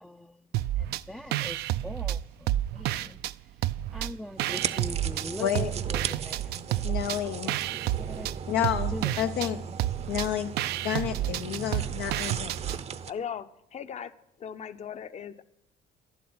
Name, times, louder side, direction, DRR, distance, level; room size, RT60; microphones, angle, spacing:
voice 1, 0.0-3.2 3.9-6.8 7.2-8.4 8.9-9.1 9.7-9.8, left 1 dB, 5° left, 6 dB, 0.4 m, -42 dB
sound 1, 0.5-1.0 1.3-3.3 3.6-5.3 5.6-12.8, right 14 dB, 75° right, 0.4 m, -30 dB
sound 2, 4.4-13.1, right 7 dB, 40° right, 0.6 m, -37 dB
voice 2, 5.4-5.7 6.8-7.5 8.5-9.6 10.1-10.5 10.8-12.5, left 10 dB, 85° left, 6 dB, 0.6 m, -30 dB
voice 3, 13.1-14.1 14.4-15.4, left 8 dB, 40° left, 13 dB, 0.7 m, -38 dB
11.0 x 7.4 x 9.6 m, 0.81 s
cardioid pair, 110°, 17 cm